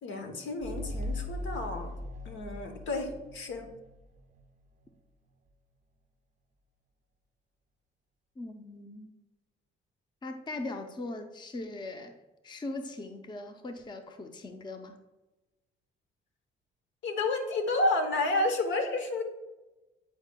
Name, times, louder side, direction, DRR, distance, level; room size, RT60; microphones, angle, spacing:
voice 1, 0.0-1.9 2.2-3.7 17.0-19.2, left 2 dB, 70° left, 5 dB, 1.0 m, -30 dB
sound 1, 0.6-4.0, left 1 dB, 40° right, 0.5 m, -39 dB
voice 2, 8.4-9.1 10.2-12.2 12.4-15.0, left 2 dB, 20° left, 6 dB, 0.6 m, -40 dB
8.7 x 4.8 x 2.3 m, 1.1 s
cardioid pair, 90°, 20 cm